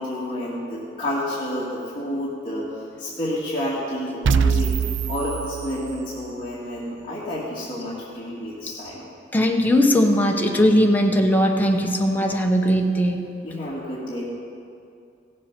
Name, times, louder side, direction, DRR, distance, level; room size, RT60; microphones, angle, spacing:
voice 1, 0.0-4.7 5.1-9.0 13.4-14.3, left 1 dB, 30° left, -9 dB, 1.9 m, -29 dB
sound 1, 4.2-6.3, right 6 dB, 85° right, 0.5 m, -23 dB
voice 2, 9.3-13.2, equal, 10° left, 1 dB, 0.9 m, -19 dB
16.5 x 7.4 x 5.9 m, 2.5 s
head